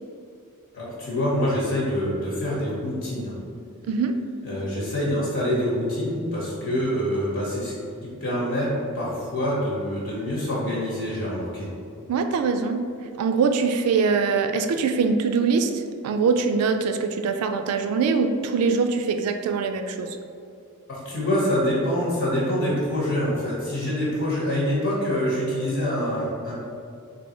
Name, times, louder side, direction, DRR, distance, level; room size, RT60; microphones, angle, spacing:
voice 1, 0.7-3.4 4.4-7.7 8.0-11.7 20.9-26.5, equal, 60° left, -6 dB, 0.9 m, -26 dB
voice 2, 12.1-12.9 13.2-20.1, right 5 dB, 80° right, 7 dB, 0.3 m, -23 dB
3.3 x 2.7 x 4.2 m, 2.4 s
head